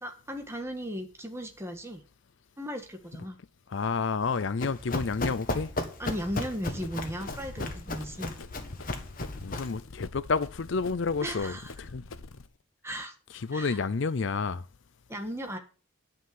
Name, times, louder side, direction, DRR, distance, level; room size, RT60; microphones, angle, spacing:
voice 1, 0.0-2.0 2.6-3.4 6.0-8.3 11.2-11.7 12.8-13.1 13.5-13.8 15.1-15.6, equal, 10° right, 1.6 m, -36 dB
voice 2, 3.7-5.7 9.4-12.0 13.3-14.6, left 4 dB, 60° left, 0.5 m, -30 dB
Run, 4.2-9.8, left 2 dB, 40° left, 1.5 m, -35 dB
Run 2, 6.4-12.5, left 3 dB, 85° left, 0.8 m, -46 dB
10.0 x 5.7 x 7.8 m
head